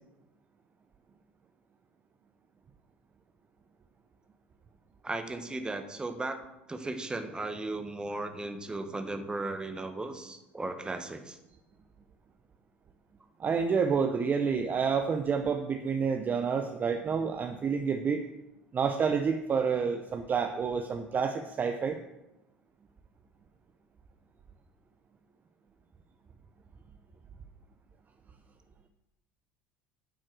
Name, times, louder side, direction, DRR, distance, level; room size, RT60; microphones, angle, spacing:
voice 1, 5.0-6.4 6.7-11.4, right 2 dB, 15° right, 7 dB, 1.4 m, -36 dB
voice 2, 13.4-18.2 18.7-22.0, right 6 dB, 30° right, 6 dB, 0.8 m, -29 dB
10.5 x 6.3 x 6.2 m, 0.94 s
figure-of-eight pair, 65°, 6 cm